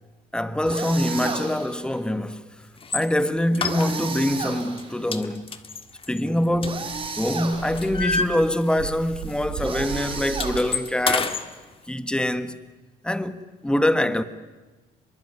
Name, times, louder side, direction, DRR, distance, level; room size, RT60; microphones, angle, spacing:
voice 1, 0.3-2.5 2.9-5.6 6.1-6.8 7.2-11.4 11.9-12.6 13.0-14.2, left 1 dB, 5° left, 1.5 m, -24 dB
sound 1, 0.6-1.8 3.6-5.1 6.6-7.9 9.6-11.0, right 4 dB, 35° right, 4.5 m, -33 dB
sound 2, 2.8-3.1 3.5-4.3 4.6-4.8 5.1-7.2 7.5-9.0 9.2-9.4 9.7-11.5, left 4 dB, 30° left, 1.9 m, -29 dB
Dog, 6.0-6.1 6.4-10.6, right 8 dB, 80° right, 3.3 m, -37 dB
24.5 x 22.5 x 9.6 m
cardioid pair, 110°, 17 cm